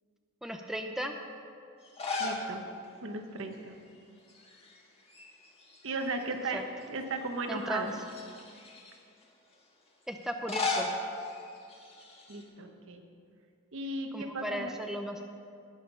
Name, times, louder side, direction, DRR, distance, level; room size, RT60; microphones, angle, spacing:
voice 1, 0.4-1.1 6.5-6.6 7.5-7.9 10.1-10.9 14.1-15.2, equal, ahead, 4 dB, 0.6 m, -35 dB
sound 1, 1.8-2.5 2.8-2.9 4.3-4.8 5.1-6.2 6.8-6.9 7.8-9.0 10.2-12.4, left 3 dB, 30° left, 1.7 m, -36 dB
voice 2, 2.2-2.6 3.0-3.7 5.8-7.9 12.3-13.0 13.7-14.7, right 2 dB, 65° right, 5 dB, 1.1 m, -36 dB
19.0 x 6.5 x 5.5 m, 2.4 s
head